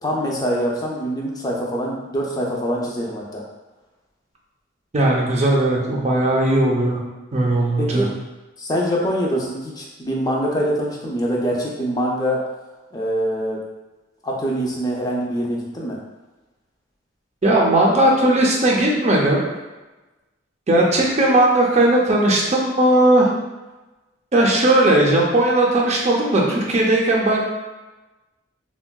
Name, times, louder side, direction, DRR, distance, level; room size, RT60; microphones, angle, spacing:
voice 1, 0.0-3.4 7.8-8.1 8.6-12.4 12.9-13.6 14.2-16.0, equal, 20° left, -2 dB, 0.4 m, -24 dB
voice 2, 4.9-7.0 7.3-8.0 17.4-19.4 20.7-23.3 24.3-27.4, right 1 dB, 35° right, -2 dB, 0.5 m, -17 dB
3.6 x 2.2 x 2.2 m, 1.1 s
head